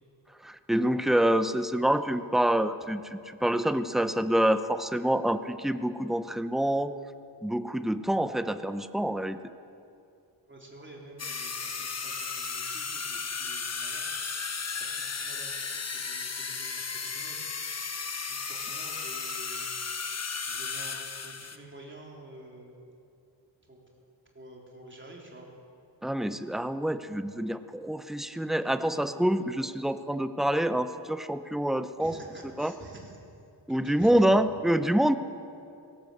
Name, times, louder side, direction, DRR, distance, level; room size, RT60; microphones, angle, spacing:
voice 1, 0.4-6.9 7.4-9.4 26.0-32.2 32.6-32.7 33.7-35.1, right 1 dB, ahead, 11 dB, 0.6 m, -26 dB
voice 2, 10.5-14.4 14.7-17.4 18.3-19.7 20.5-22.7 23.7-23.8 24.3-25.5 32.0-33.2 33.7-34.2, right 1 dB, 25° right, -1 dB, 3.6 m, -49 dB
sound 1, 11.2-21.6, left 5 dB, 35° left, 1.0 m, -35 dB
19.0 x 17.0 x 8.0 m, 2.6 s
wide cardioid pair, 150°, 46 cm